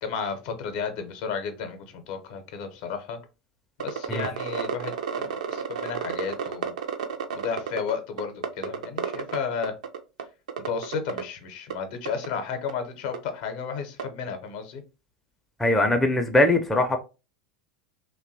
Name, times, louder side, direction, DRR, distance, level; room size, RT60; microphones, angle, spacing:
voice 1, 0.0-3.2 3.8-6.7 7.3-9.7 10.7-14.8, left 6 dB, 55° left, 0.6 m, -33 dB
sound 1, 3.8-7.9 8.2-9.4 9.6-10.2 10.5-11.2 11.7-11.8 12.0-12.3 12.7-12.8 13.1-13.2 14.0-14.1, right 7 dB, 70° right, 0.4 m, -31 dB
voice 2, 15.6-17.0, left 1 dB, 5° left, 0.4 m, -21 dB
2.7 x 2.1 x 2.6 m
figure-of-eight pair, 85°, 4 cm